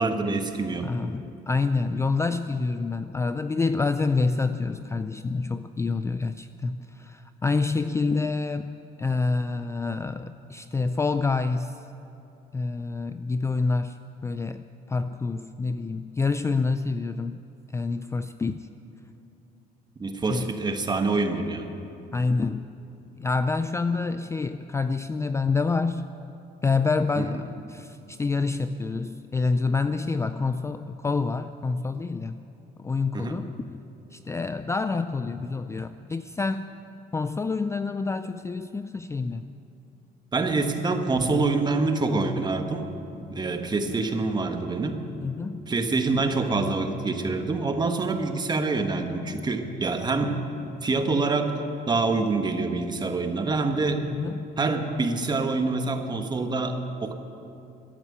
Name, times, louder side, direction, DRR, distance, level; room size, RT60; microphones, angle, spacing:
voice 1, 0.0-0.9 20.0-21.7 27.2-27.4 33.1-33.4 40.3-42.9 43.2-45.0 45.7-50.4 50.8-51.5 51.9-54.1 54.6-57.1, right 3 dB, 25° right, 6 dB, 1.4 m, -26 dB
voice 2, 0.8-11.8 12.5-17.4 17.7-18.7 20.3-20.5 22.1-22.7 23.2-26.2 26.6-32.4 32.8-33.8 34.1-36.7 37.1-39.5 45.2-45.6 54.1-54.5, left 4 dB, 15° left, 11 dB, 0.4 m, -27 dB
14.0 x 11.0 x 9.2 m, 2.8 s
cardioid pair, 110°, 17 cm